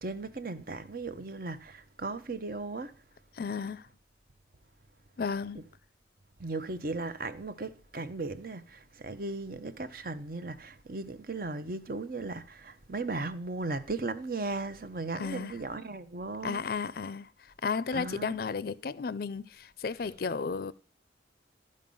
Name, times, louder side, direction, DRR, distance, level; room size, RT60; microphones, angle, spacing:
voice 1, 0.0-2.9 6.4-16.6 17.9-18.3, right 3 dB, 50° right, 0.8 m, -37 dB
voice 2, 3.3-3.9 5.2-5.6 15.2-15.5 16.4-20.7, left 5 dB, 55° left, 0.5 m, -34 dB
13.0 x 5.3 x 5.4 m
head